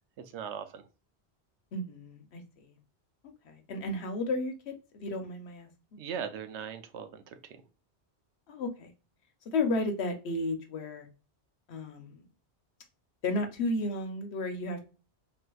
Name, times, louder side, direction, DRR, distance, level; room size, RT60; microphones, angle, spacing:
voice 1, 0.3-0.8 6.0-7.6, right 7 dB, 85° right, 0.9 m, -39 dB
voice 2, 1.7-2.8 3.4-5.7 8.5-8.9 9.4-11.1 11.7-12.2 13.2-14.9, left 2 dB, 75° left, 1.0 m, -33 dB
3.7 x 2.6 x 2.2 m
omnidirectional pair, 1.1 m